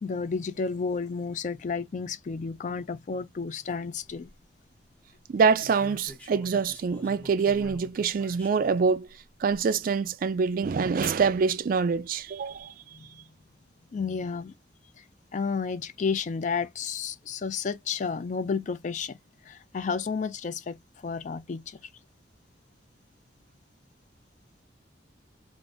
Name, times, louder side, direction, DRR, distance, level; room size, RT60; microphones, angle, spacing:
voice 1, 0.0-4.3 12.9-13.2 13.9-14.5 15.3-19.2 19.5-20.8 21.0-21.8, left 5 dB, 40° left, 0.3 m, -31 dB
sound 1, 3.9-4.3 5.5-8.9 9.5-9.6 11.0-11.2 12.1-12.6, left 1 dB, 10° left, 1.1 m, -46 dB
voice 2, 5.3-9.1 9.4-12.7, right 5 dB, 50° right, 0.3 m, -25 dB
3.8 x 2.5 x 2.4 m
head